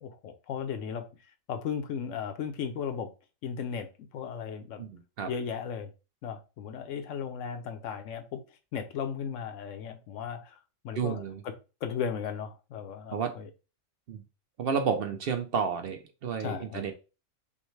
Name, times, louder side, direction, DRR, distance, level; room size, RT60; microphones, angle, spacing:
voice 1, 0.0-1.1 1.5-3.1 3.4-4.8 5.3-5.9 6.2-8.4 8.7-11.5 11.8-13.5 16.4-16.9, left 7 dB, 80° left, 1.0 m, -36 dB
voice 2, 4.8-5.3 11.0-11.4 13.1-13.3 14.1-14.2 14.6-16.9, right 6 dB, 60° right, 0.7 m, -31 dB
5.5 x 2.2 x 3.1 m
omnidirectional pair, 1.3 m